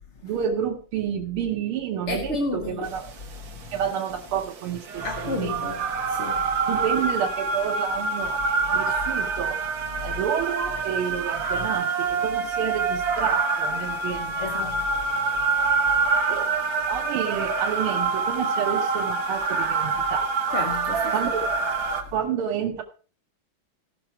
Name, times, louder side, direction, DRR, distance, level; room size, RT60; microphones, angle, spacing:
voice 1, 0.2-3.1 3.7-5.7 6.7-8.4 8.7-9.6 10.0-14.8 16.3-16.5 16.9-20.3 21.1-21.5 22.1-22.8, right 8 dB, 85° right, 1.8 m, -29 dB
voice 2, 2.1-2.9 5.0-6.7 8.7-8.8 14.4-14.8 20.5-21.1, left 3 dB, 45° left, 1.0 m, -31 dB
sound 1, 3.0-22.0, right 4 dB, 65° right, 2.0 m, -26 dB
16.5 x 5.9 x 4.5 m
omnidirectional pair, 2.3 m